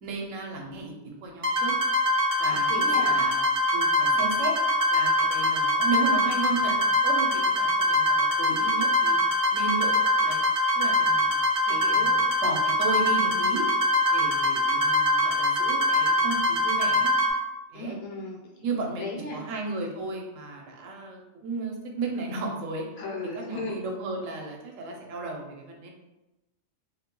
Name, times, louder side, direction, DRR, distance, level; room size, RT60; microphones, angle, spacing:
voice 1, 0.0-1.8 2.4-3.4 3.7-4.5 4.9-9.2 9.5-10.4 10.7-11.5 11.9-13.7 14.1-17.1 17.7-18.0 18.6-22.9 23.3-25.9, right 3 dB, 80° right, 1 dB, 0.9 m, -34 dB
sound 1, 1.4-17.3, left 1 dB, 60° right, 0.3 m, -23 dB
voice 2, 2.5-3.2 11.7-12.2 17.7-18.5 19.0-19.4 23.0-23.8, left 2 dB, 65° left, -2 dB, 0.7 m, -36 dB
2.4 x 2.1 x 2.8 m, 0.99 s
omnidirectional pair, 1.3 m